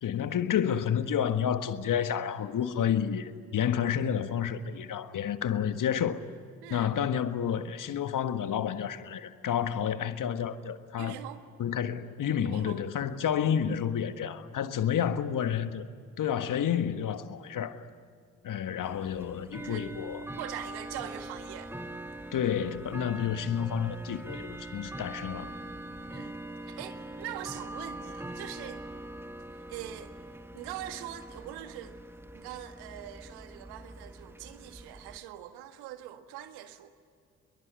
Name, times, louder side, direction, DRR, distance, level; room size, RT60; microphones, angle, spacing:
voice 1, 0.0-6.2 6.7-11.2 11.6-15.8 16.2-17.8 18.4-20.2 22.3-25.5, left 8 dB, 50° left, 1.6 m, -30 dB
voice 2, 6.6-6.9 11.0-11.4 12.4-13.2 19.6-19.9 20.4-21.7 26.1-26.4 26.6-28.9 29.7-30.2 30.5-32.0 32.3-37.0, right 12 dB, 70° right, 1.8 m, -43 dB
Bell / Tick-tock, 18.8-35.2, right 1 dB, 5° right, 1.6 m, -43 dB
27.5 x 22.5 x 9.6 m
hypercardioid pair, 45°, 40 cm